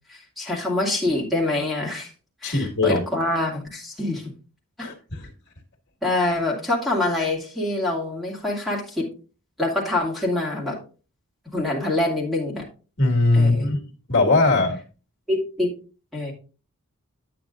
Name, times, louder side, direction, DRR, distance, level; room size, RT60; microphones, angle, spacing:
voice 1, 0.4-2.1 2.4-4.2 4.8-4.9 6.0-9.1 9.6-10.8 11.5-12.7 13.3-13.7 15.3-15.7 16.1-16.3, left 2 dB, ahead, 2.1 m, -25 dB
voice 2, 2.4-3.0 4.8-5.3 13.0-13.8 14.1-14.8, left 2 dB, 55° left, 1.7 m, -20 dB
9.1 x 8.6 x 2.5 m
head